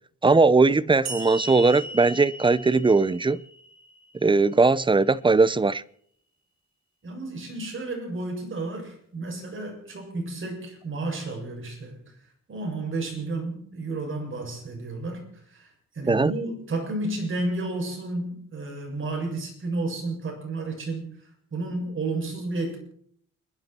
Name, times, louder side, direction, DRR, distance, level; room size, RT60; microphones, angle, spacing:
voice 1, 0.2-3.4 4.2-5.8 16.1-16.3, right 3 dB, 15° right, 0.7 m, -19 dB
sound 1, 1.1-4.4, right 1 dB, 60° right, 5.7 m, -38 dB
voice 2, 7.0-12.1 12.5-15.2 15.5-22.8, right 2 dB, 40° right, 7.4 m, -32 dB
29.5 x 11.0 x 4.5 m
cardioid pair, 90°, 30 cm